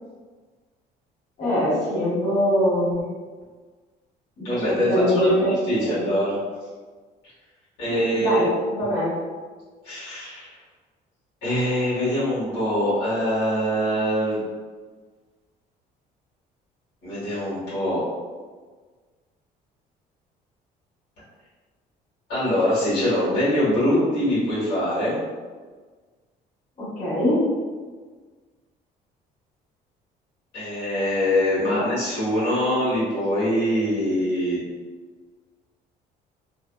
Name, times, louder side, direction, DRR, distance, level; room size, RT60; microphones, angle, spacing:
voice 1, 1.4-3.1 4.4-6.1 7.9-9.2 26.8-27.4 31.7-31.9, equal, 45° left, -10 dB, 1.4 m, -23 dB
voice 2, 4.4-5.3 5.7-6.4 7.8-8.4 9.8-10.5 11.4-14.4 17.0-18.0 22.3-25.2 30.5-34.6, equal, 90° left, -10 dB, 1.4 m, -23 dB
2.6 x 2.2 x 2.2 m, 1.4 s
cardioid pair, 110°, 17 cm